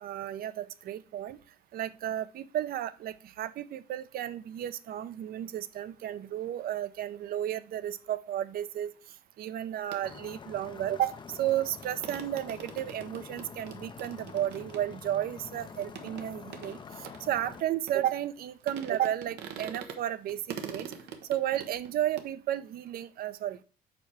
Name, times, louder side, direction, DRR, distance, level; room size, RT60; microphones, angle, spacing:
voice 1, 0.0-1.4 1.7-8.9 9.4-16.8 17.2-20.9 21.3-23.6, right 11 dB, 60° right, 15 dB, 0.6 m, -33 dB
sound 1, 9.9-10.0 11.2-11.3 11.5-11.6 11.8-18.4 18.7-20.0 20.3-22.3, right 7 dB, 90° right, 1.0 m, -44 dB
sound 2, 10.0-17.6, left 6 dB, 30° left, 0.4 m, -47 dB
5.1 x 4.5 x 6.1 m, 0.36 s
cardioid pair, 110°, 17 cm